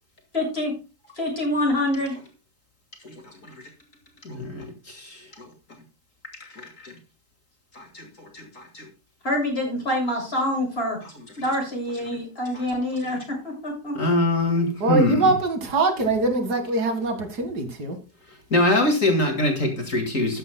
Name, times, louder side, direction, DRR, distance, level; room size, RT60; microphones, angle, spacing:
voice 1, 0.3-0.7 1.1-2.2 9.2-11.0 11.4-14.0, left 1 dB, 40° left, 7.0 m, -26 dB
voice 2, 4.2-5.5 6.4-6.9 7.7-8.9 14.0-15.3 18.5-20.4, left 1 dB, 55° left, 2.5 m, -24 dB
voice 3, 14.8-18.0, right 2 dB, 80° right, 2.5 m, -23 dB
14.0 x 10.5 x 2.2 m
omnidirectional pair, 1.7 m